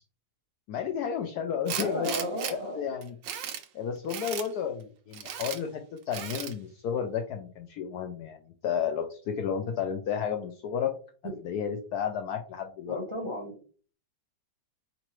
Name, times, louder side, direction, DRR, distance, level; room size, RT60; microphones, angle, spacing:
voice 1, 0.7-2.1 2.5-3.1 3.7-8.4 8.6-10.9 11.4-13.0, left 7 dB, 70° left, 6 dB, 1.0 m, -32 dB
Tools, 1.7-2.5 3.0-3.7 4.1-4.5 5.1-5.6 6.1-6.5, right 9 dB, 80° right, 1.4 m, -35 dB
voice 2, 1.8-2.8 11.2-11.4 12.9-13.6, left 1 dB, 20° right, -2 dB, 1.1 m, -33 dB
4.4 x 3.9 x 3.0 m, 0.40 s
omnidirectional pair, 2.0 m